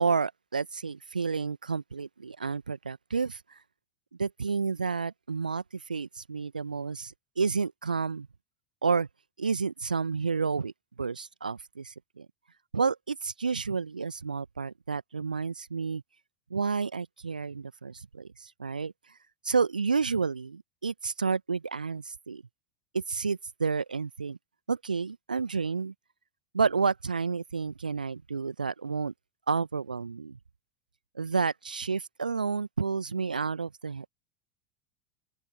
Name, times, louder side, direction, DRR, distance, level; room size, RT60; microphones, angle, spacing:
voice 1, 0.0-3.4 4.2-8.3 8.8-9.1 9.4-10.7 11.0-12.3 12.7-16.0 16.5-18.9 19.4-22.4 22.9-24.4 24.7-25.9 26.5-29.1 29.5-30.4 31.1-34.1, right 5 dB, 80° right, 1.1 m, -30 dB
open air
figure-of-eight pair, 80°, 5 cm